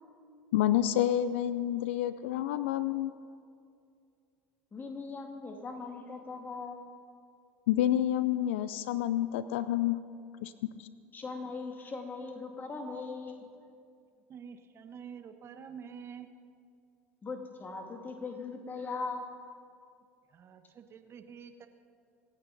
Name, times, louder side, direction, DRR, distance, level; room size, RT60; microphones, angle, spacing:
voice 1, 0.5-3.1 7.7-10.0 10.4-10.9, left 12 dB, 75° left, 14 dB, 0.4 m, -29 dB
voice 2, 4.7-6.9 11.1-13.4 17.2-19.3, left 4 dB, 30° left, 3 dB, 2.5 m, -40 dB
voice 3, 14.3-16.3 20.3-21.7, right 7 dB, 40° right, 8 dB, 1.1 m, -47 dB
25.0 x 9.0 x 4.0 m, 2.3 s
hypercardioid pair, 70°, 7 cm